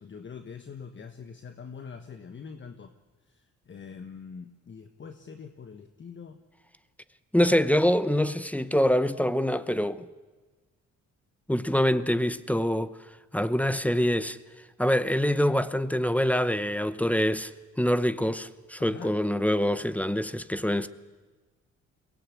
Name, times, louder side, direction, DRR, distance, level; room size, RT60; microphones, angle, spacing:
voice 1, 0.0-2.9 3.3-6.4 18.8-19.1, left 6 dB, 40° left, 1.4 m, -44 dB
voice 2, 7.3-10.1 11.5-13.0 13.3-14.4 14.8-17.5 17.8-20.9, equal, 5° left, 0.8 m, -25 dB
23.0 x 18.0 x 8.5 m
cardioid pair, 90°, 30 cm